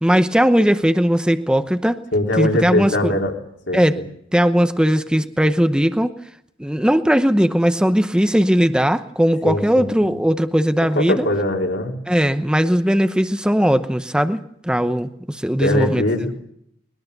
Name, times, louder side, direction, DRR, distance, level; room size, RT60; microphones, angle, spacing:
voice 1, 0.0-2.0 2.4-3.2 3.7-4.0 4.3-6.1 6.6-11.3 12.1-16.0, equal, 5° right, 9 dB, 0.8 m, -18 dB
voice 2, 2.1-3.3 3.7-4.1 9.4-10.1 11.0-11.9 15.6-16.3, left 1 dB, 65° left, 1 dB, 4.0 m, -21 dB
21.0 x 21.0 x 6.7 m, 0.72 s
head